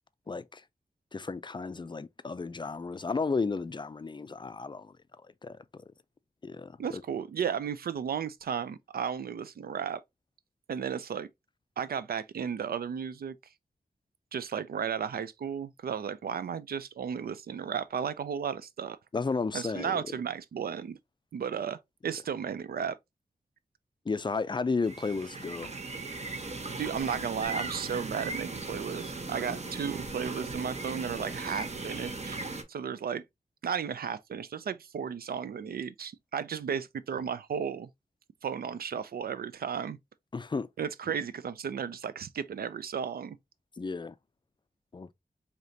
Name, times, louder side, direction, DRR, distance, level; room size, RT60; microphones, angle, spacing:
voice 1, 0.3-0.6 1.1-4.9 5.4-5.8 6.4-7.0 19.1-20.0 24.1-25.7 40.3-40.7 43.8-44.1 44.9-45.1, left 4 dB, 30° left, 0.4 m, -33 dB
voice 2, 6.8-10.0 10.7-11.3 11.8-13.4 14.3-19.0 19.5-21.0 21.3-21.8 22.0-23.0 26.8-32.4 32.7-33.2 33.6-37.9 38.4-40.0 40.8-43.4, right 7 dB, 85° right, 0.4 m, -34 dB
sound 1, 24.8-32.6, right 3 dB, 45° right, 0.9 m, -38 dB
4.9 x 2.9 x 2.6 m
wide cardioid pair, 60°, 15 cm